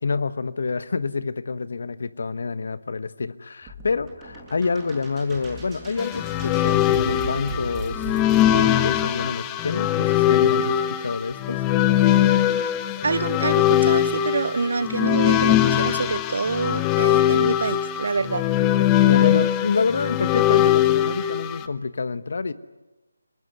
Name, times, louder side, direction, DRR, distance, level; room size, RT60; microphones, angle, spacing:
voice 1, 0.0-8.1 8.5-11.6 19.1-22.5, left 4 dB, 55° left, 14 dB, 1.2 m, -27 dB
sound 1, 3.6-8.6, right 2 dB, 10° right, 6.3 m, -37 dB
sound 2, 6.0-21.7, left 12 dB, 15° left, 0.9 m, -21 dB
voice 2, 13.0-18.4, right 4 dB, 60° right, 19 dB, 0.8 m, -26 dB
25.5 x 20.5 x 9.5 m, 1.1 s
figure-of-eight pair, 155°, 0 cm